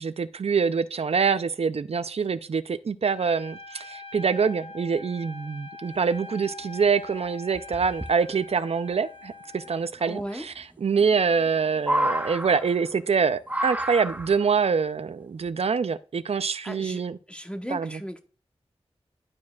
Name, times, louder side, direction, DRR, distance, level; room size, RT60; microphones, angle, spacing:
voice 1, 0.0-10.2 10.8-17.2 17.7-17.9, right 5 dB, 70° right, 0.4 m, -25 dB
Trumpet, 3.1-9.9, left 2 dB, 70° left, 0.8 m, -43 dB
sound 1, 6.5-6.6 6.8-6.9 7.5-8.1 9.7-9.8 11.0-11.5 11.8-13.0 13.5-14.5 15.5-15.6, right 1 dB, 15° right, 0.6 m, -29 dB
voice 2, 10.0-10.5 16.6-17.0 17.3-18.2, equal, 10° left, 0.9 m, -36 dB
11.5 x 4.8 x 2.3 m
wide cardioid pair, 60°, 11 cm